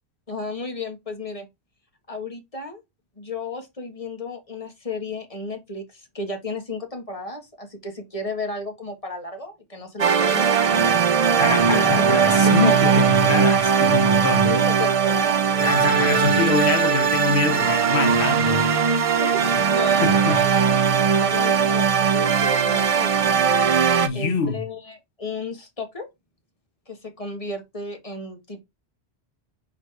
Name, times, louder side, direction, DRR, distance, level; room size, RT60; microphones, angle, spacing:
voice 1, 0.3-1.5 2.1-2.8 3.2-11.0 11.7-13.0 14.4-16.4 19.1-20.7 21.2-23.1 24.1-26.1 26.9-28.6, left 2 dB, 35° left, 1.6 m, -33 dB
sound 1, 10.0-24.1, right 6 dB, 45° right, 0.5 m, -19 dB
voice 2, 11.4-14.5 15.6-18.7 20.0-20.4 24.0-24.6, left 4 dB, 60° left, 1.3 m, -25 dB
5.1 x 4.0 x 4.7 m
omnidirectional pair, 1.1 m